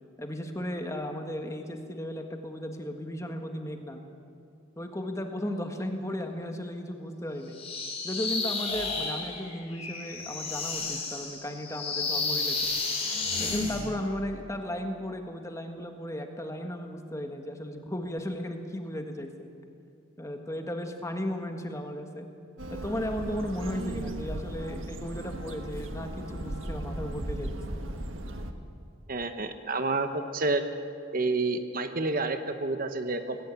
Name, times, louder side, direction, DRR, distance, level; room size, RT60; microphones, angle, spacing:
voice 1, 0.2-4.0 4.8-7.6 8.0-12.6 13.4-19.5 20.2-22.3 22.7-27.5, left 1 dB, 15° left, 4 dB, 1.5 m, -35 dB
sound 1, 7.5-13.9, left 3 dB, 30° left, 3.8 m, -32 dB
sound 2, 22.6-28.5, right 1 dB, 80° right, 1.5 m, -36 dB
voice 2, 29.1-30.6 31.1-33.4, right 3 dB, 45° right, 8 dB, 1.1 m, -29 dB
19.5 x 17.5 x 8.3 m, 2.5 s
head